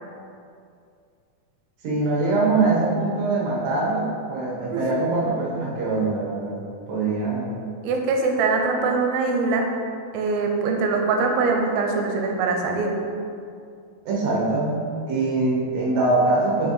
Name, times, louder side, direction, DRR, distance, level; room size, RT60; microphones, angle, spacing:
voice 1, 1.8-6.6 6.9-7.6 14.1-16.7, right 3 dB, 65° right, -4 dB, 2.0 m, -23 dB
voice 2, 7.8-9.7 10.1-12.9, right 4 dB, 85° right, 2 dB, 2.4 m, -22 dB
5.7 x 4.7 x 4.0 m, 2.4 s
omnidirectional pair, 4.2 m